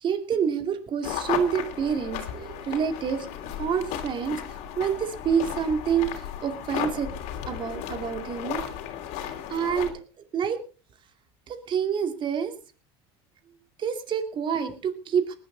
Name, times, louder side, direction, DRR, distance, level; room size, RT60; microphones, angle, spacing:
voice 1, 0.0-3.3 3.6-4.5 4.8-7.1 7.5-8.7 9.2-10.0 10.3-10.6 11.5-12.5 13.8-15.4, right 7 dB, 40° right, 8 dB, 2.5 m, -27 dB
sound 1, 1.0-9.9, left 10 dB, 60° left, 2.9 m, -35 dB
19.5 x 11.5 x 4.0 m, 0.36 s
supercardioid pair, 110°, 13 cm